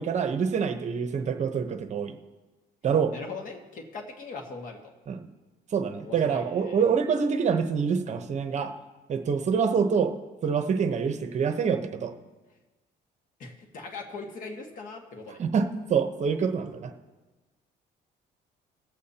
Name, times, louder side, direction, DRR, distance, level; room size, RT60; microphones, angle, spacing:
voice 1, 0.0-2.1 2.8-3.1 5.1-5.2 5.7-8.7 9.1-10.1 10.4-12.1 15.4-16.9, right 6 dB, 45° right, 7 dB, 0.9 m, -26 dB
voice 2, 3.1-4.9 6.0-6.9 13.4-15.4, left 4 dB, 50° left, 3 dB, 1.7 m, -40 dB
20.0 x 8.4 x 2.8 m, 1.2 s
cardioid pair, 110°, 17 cm